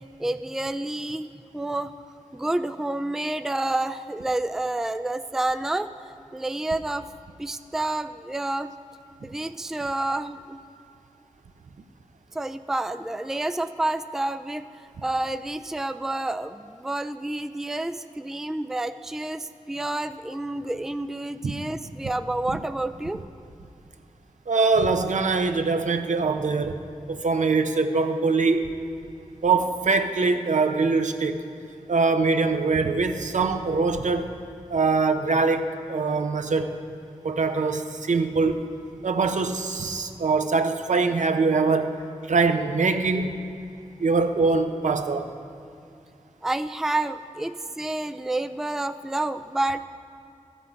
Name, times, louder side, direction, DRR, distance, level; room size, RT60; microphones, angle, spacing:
voice 1, 0.2-1.9 2.3-7.1 7.4-8.7 9.2-10.6 12.3-14.6 15.0-23.2 46.4-49.9, right 2 dB, 5° right, 10 dB, 0.3 m, -29 dB
voice 2, 24.5-26.8 27.1-28.7 29.4-31.4 31.9-34.3 34.7-36.8 37.2-38.6 39.0-42.0 42.2-43.4 44.0-45.3, right 4 dB, 75° right, 7 dB, 0.7 m, -23 dB
12.5 x 8.0 x 5.2 m, 2.6 s
cardioid pair, 50°, 13 cm